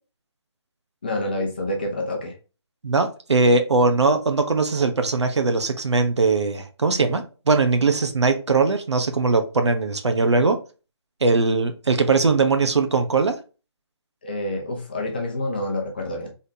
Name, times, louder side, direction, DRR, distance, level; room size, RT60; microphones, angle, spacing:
voice 1, 1.0-2.3 14.2-16.3, left 1 dB, 20° left, 0.7 m, -27 dB
voice 2, 2.8-10.6 11.2-13.4, right 3 dB, 75° right, 1.0 m, -20 dB
4.2 x 3.5 x 2.7 m
hypercardioid pair, 175°, 15 cm